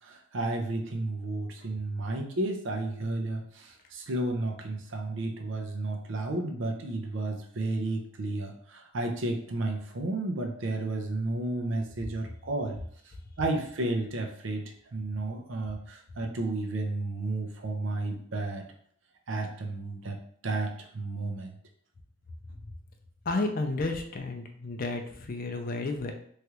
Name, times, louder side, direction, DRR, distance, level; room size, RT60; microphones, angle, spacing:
voice 1, 0.0-12.8 13.4-18.6 19.3-21.5, right 2 dB, 65° right, 3 dB, 0.5 m, -32 dB
voice 2, 23.2-26.1, left 2 dB, 45° left, 4 dB, 0.4 m, -32 dB
3.1 x 2.4 x 2.9 m, 0.63 s
head